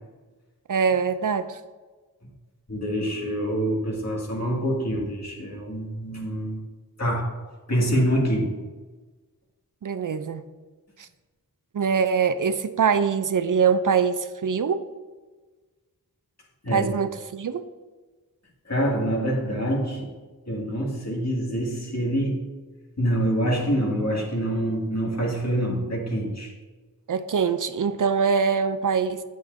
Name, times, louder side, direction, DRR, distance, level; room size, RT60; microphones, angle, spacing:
voice 1, 0.7-1.6 9.8-10.4 11.0-11.1 11.7-14.8 16.7-17.6 27.1-29.3, right 6 dB, 60° right, 10 dB, 0.5 m, -23 dB
voice 2, 2.7-6.6 7.0-7.3 7.7-8.6 16.6-16.9 18.7-20.1 20.5-22.5 23.0-26.5, equal, 45° left, -2 dB, 2.2 m, -26 dB
8.5 x 7.8 x 2.6 m, 1.3 s
cardioid pair, 40°, 36 cm